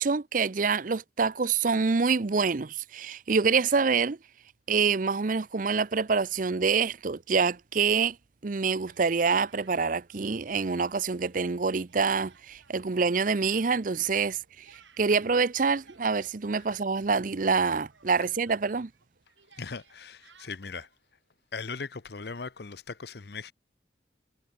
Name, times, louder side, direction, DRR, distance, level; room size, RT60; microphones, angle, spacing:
voice 1, 0.0-4.2 4.7-8.2 8.4-18.9, right 5 dB, 45° right, 0.6 m, -26 dB
Speech, 8.9-10.2 10.5-11.3 11.6-17.3 17.6-21.0, right 5 dB, 80° right, 7.3 m, -60 dB
voice 2, 19.6-20.9 21.5-23.5, left 4 dB, 60° left, 0.8 m, -39 dB
head